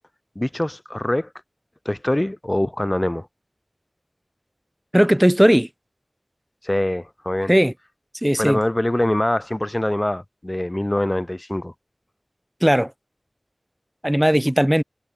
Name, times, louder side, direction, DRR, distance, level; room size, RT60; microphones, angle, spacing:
voice 1, 0.4-1.3 1.9-3.3 6.6-7.5 8.4-11.7, left 1 dB, 30° left, 2.2 m, -24 dB
voice 2, 4.9-5.7 7.5-7.7 8.2-8.6 12.6-12.9 14.0-14.8, equal, 10° right, 2.8 m, -17 dB
wide cardioid pair, 50°, 0 cm